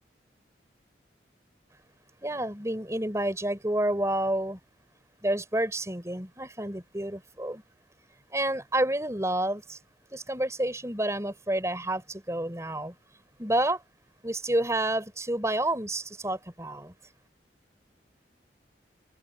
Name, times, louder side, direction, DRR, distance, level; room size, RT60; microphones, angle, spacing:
voice 1, 2.2-4.6 5.2-7.6 8.3-9.8 10.1-12.9 13.4-13.8 14.2-16.9, right 1 dB, 15° right, 3.8 m, -29 dB
head